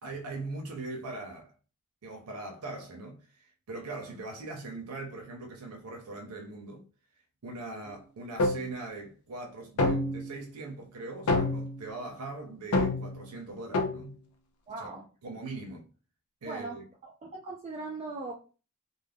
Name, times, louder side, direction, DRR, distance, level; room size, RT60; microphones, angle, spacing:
voice 1, 0.0-1.5 2.0-6.9 7.4-14.2 14.8-14.9 15.2-15.9 16.4-16.8, right 2 dB, 90° right, 0.6 m, -41 dB
sound 1, 8.4-8.8 9.8-10.4 11.3-11.8 12.7-13.2 13.7-14.1, left 2 dB, 80° left, 0.5 m, -27 dB
voice 2, 14.7-15.1 16.5-18.3, right 3 dB, 25° right, 0.3 m, -39 dB
2.3 x 2.0 x 3.3 m
head